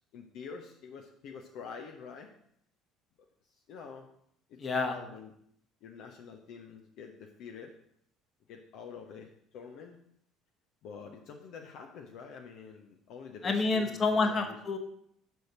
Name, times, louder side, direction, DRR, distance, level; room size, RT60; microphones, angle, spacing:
voice 1, 0.1-2.3 3.7-4.1 4.5-5.3 5.8-7.7 8.5-10.0 10.8-14.6, left 6 dB, 55° left, 2 dB, 0.7 m, -46 dB
voice 2, 4.6-4.9 13.4-14.8, left 3 dB, 30° left, 4 dB, 1.2 m, -28 dB
6.4 x 4.4 x 6.6 m, 0.71 s
figure-of-eight pair, 55°, 0 cm